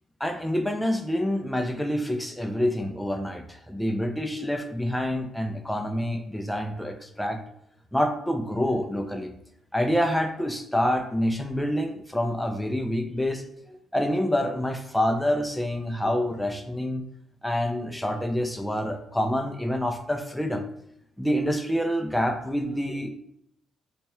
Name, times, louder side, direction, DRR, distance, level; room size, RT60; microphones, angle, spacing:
voice 1, 0.2-7.4 7.9-9.3 9.7-17.0 17.4-20.7 21.2-23.1, equal, 5° left, 5 dB, 0.3 m, -27 dB
3.2 x 2.2 x 4.2 m, 0.73 s
cardioid pair, 120°, 0 cm